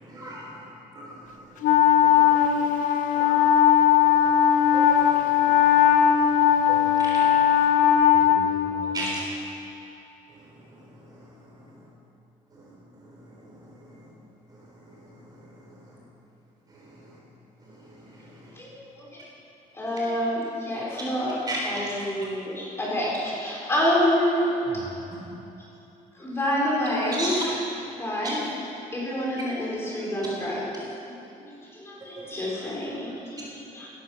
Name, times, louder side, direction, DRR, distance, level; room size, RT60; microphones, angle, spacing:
voice 1, 0.0-0.5 0.9-1.1 1.9-2.4 3.2-3.5 4.0-4.3 4.7-5.5 6.7-7.1 8.9-9.2 13.8-13.9 21.5-21.6 27.2-27.4 32.2-32.3, right 1 dB, 25° right, -4 dB, 3.7 m, -35 dB
Wind instrument woodwind instrument, 1.6-9.1, left 9 dB, 65° left, 1.0 m, -19 dB
voice 2, 8.1-9.2 24.6-25.5, right 1 dB, 60° right, -4 dB, 4.7 m, -43 dB
voice 3, 18.6-19.1 19.7-24.5 24.9-25.0 26.1-27.6 27.9-30.7 31.1-33.9, equal, 15° left, -5 dB, 4.5 m, -28 dB
16.5 x 15.0 x 5.8 m, 2.9 s
cardioid pair, 175°, 15 cm